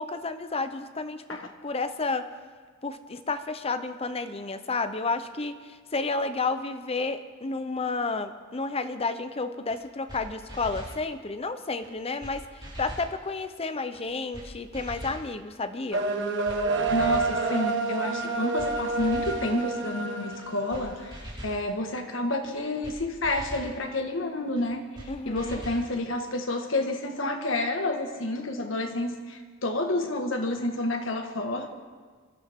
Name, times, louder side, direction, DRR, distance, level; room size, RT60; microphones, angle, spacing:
voice 1, 0.0-2.3 2.8-16.1 25.1-25.6, left 3 dB, 30° left, 10 dB, 0.8 m, -31 dB
sound 1, 9.7-9.8 10.1-10.2 10.5-11.0 11.8-11.9 12.2-12.3 12.6-13.1 13.9-14.0 14.3-14.5 14.7-15.2 16.1-16.2 16.4-16.6 16.9-17.3 18.2-18.3 18.6-18.7 19.0-19.5 20.3-20.4 20.7-20.8 21.1-21.6 22.4-22.5 22.8-23.0 23.2-23.7 24.6-24.7 24.9-25.1 25.3-25.8, equal, 25° right, 5.7 m, -41 dB
sound 2, 15.9-21.1, right 3 dB, 65° right, 1.3 m, -28 dB
voice 2, 16.9-24.8 25.3-31.7, left 2 dB, 75° left, 4 dB, 1.6 m, -29 dB
24.5 x 13.5 x 3.7 m, 1.6 s
head